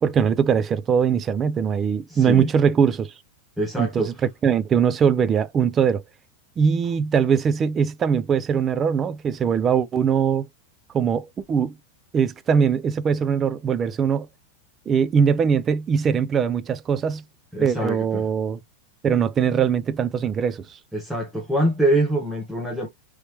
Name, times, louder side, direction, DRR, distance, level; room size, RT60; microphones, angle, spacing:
voice 1, 0.0-3.1 3.8-4.1 4.4-6.0 6.6-10.5 10.9-11.7 12.1-14.3 14.9-17.2 17.6-18.6 19.0-20.8, right 7 dB, 25° right, 0.4 m, -21 dB
voice 2, 2.1-2.5 3.6-4.1 17.5-18.3 20.9-22.9, right 1 dB, 5° right, 0.8 m, -24 dB
3.2 x 3.2 x 2.9 m
supercardioid pair, 140°, 0 cm